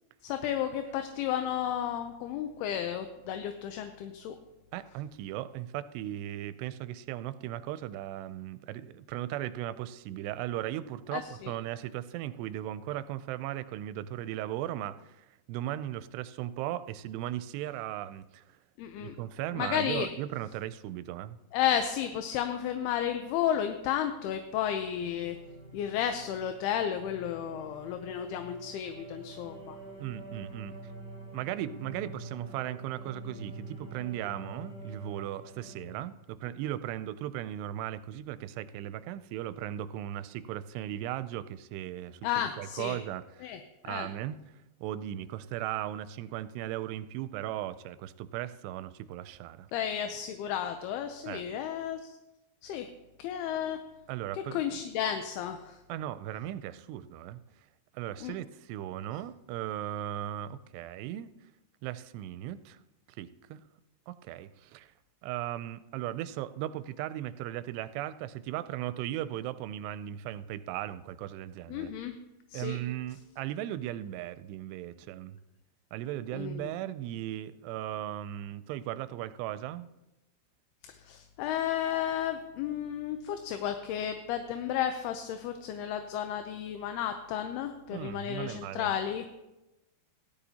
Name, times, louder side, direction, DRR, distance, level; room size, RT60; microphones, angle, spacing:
voice 1, 0.2-4.4 11.1-11.5 18.8-19.2 19.5-20.1 21.5-25.4 25.7-29.8 42.2-43.0 43.4-43.6 43.9-44.1 49.7-52.2 52.6-52.9 53.2-53.8 54.3-55.8 58.2-58.3 71.7-72.2 72.5-72.8 76.3-76.7 80.9-89.3, left 9 dB, 80° left, 7 dB, 2.5 m, -33 dB
voice 2, 4.7-18.4 19.0-21.4 30.0-30.7 31.3-42.2 42.6-43.5 43.8-44.4 44.8-49.7 51.3-51.4 54.1-54.6 55.9-57.4 57.9-61.3 61.8-62.8 63.2-63.6 64.1-64.9 65.2-71.9 72.5-75.4 75.9-79.9 87.9-88.9, right 13 dB, 85° right, 13 dB, 2.7 m, -37 dB
sound 1, 25.0-35.9, right 2 dB, 35° left, 2.9 m, -46 dB
17.0 x 12.0 x 2.8 m, 0.98 s
omnidirectional pair, 4.8 m